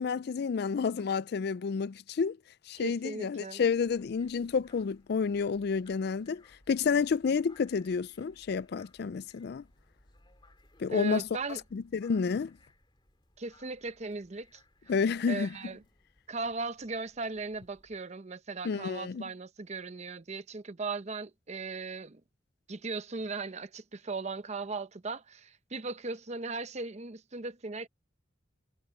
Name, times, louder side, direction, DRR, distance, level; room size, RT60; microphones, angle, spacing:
voice 1, 0.0-2.4 2.7-9.6 10.8-11.3 11.7-12.5 14.9-15.5 18.6-19.2, left 5 dB, 55° left, 0.4 m, -30 dB
voice 2, 2.8-3.6 10.9-11.6 13.4-14.6 15.3-15.8 16.3-22.2 22.7-27.9, right 3 dB, 35° right, 0.8 m, -38 dB
sound 1, 3.7-18.0, left 2 dB, 25° left, 2.9 m, -64 dB
head